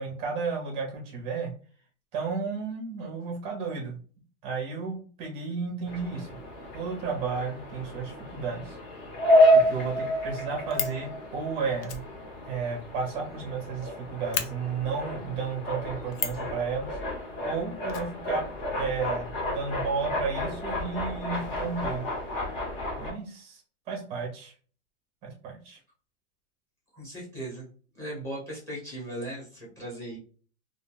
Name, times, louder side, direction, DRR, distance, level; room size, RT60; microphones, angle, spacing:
voice 1, 0.0-1.5 2.1-4.0 4.4-6.3 6.7-8.8 9.5-12.0 12.4-16.9 17.4-18.4 18.7-22.1 23.0-23.6 23.9-24.5 25.2-25.8, right 5 dB, 15° right, 2 dB, 0.5 m, -33 dB
sound 1, 5.9-23.1, equal, 50° left, 1.0 m, -29 dB
Fire, 10.3-11.0 11.8-13.6 13.9-14.0 14.3-14.5 16.1-16.5 17.9-18.8 19.0-19.1 19.3-19.5, left 8 dB, 75° left, 0.6 m, -34 dB
voice 2, 26.9-27.7 27.9-30.2, right 1 dB, 10° left, -4 dB, 0.8 m, -38 dB
2.3 x 2.1 x 3.1 m, 0.42 s
supercardioid pair, 170°, 35 cm